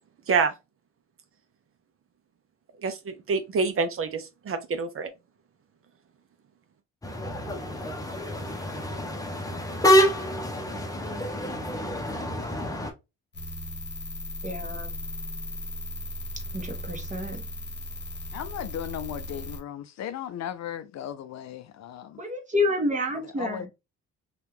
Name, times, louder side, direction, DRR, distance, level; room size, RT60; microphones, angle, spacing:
voice 1, 2.8-5.1, right 5 dB, 45° right, 0.6 m, -27 dB
sound 1, 7.0-12.9, equal, 10° left, 0.8 m, -27 dB
sound 2, 13.3-19.6, equal, 35° left, 1.0 m, -36 dB
voice 2, 14.4-14.9 16.5-17.4 22.2-23.7, left 2 dB, 25° right, 1.1 m, -29 dB
voice 3, 18.3-22.2 23.1-23.7, left 10 dB, 60° left, 0.5 m, -36 dB
2.8 x 2.4 x 3.4 m
cardioid pair, 90°, 30 cm